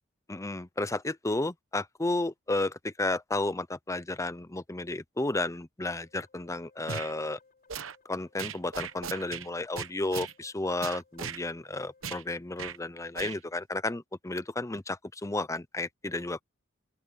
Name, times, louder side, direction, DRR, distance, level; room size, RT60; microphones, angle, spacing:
voice 1, 0.3-7.4 8.1-16.4, left 2 dB, 15° left, 0.7 m, -32 dB
sound 1, 5.9-12.1, left 4 dB, 45° left, 6.6 m, -64 dB
sound 2, 6.9-7.1 7.7-8.0 8.4-9.5 9.8-10.3 10.8-11.4 12.0-12.2 12.6-12.8 13.2-13.4, right 7 dB, 75° right, 1.0 m, -38 dB
open air
head